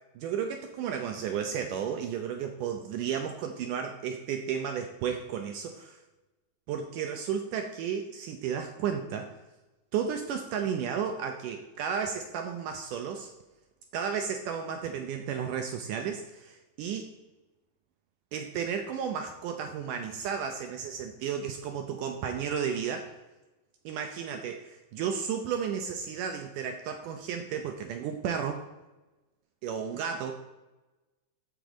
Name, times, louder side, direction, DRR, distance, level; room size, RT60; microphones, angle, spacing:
voice 1, 0.2-6.0 6.7-9.3 9.9-13.3 13.9-17.1 18.3-23.1 23.9-28.6 29.6-30.3, right 7 dB, 75° right, 5 dB, 2.0 m, -33 dB
14.0 x 5.2 x 5.0 m, 1.1 s
omnidirectional pair, 4.2 m